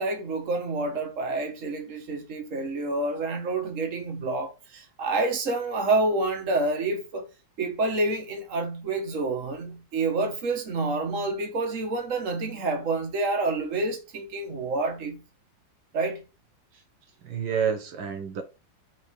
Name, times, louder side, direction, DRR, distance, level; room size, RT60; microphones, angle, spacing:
voice 1, 0.0-7.3 7.6-15.2 15.9-16.2, right 2 dB, 45° right, 1.7 m, -28 dB
voice 2, 17.2-18.4, right 7 dB, 75° right, 1.7 m, -29 dB
4.6 x 4.6 x 4.9 m
omnidirectional pair, 2.1 m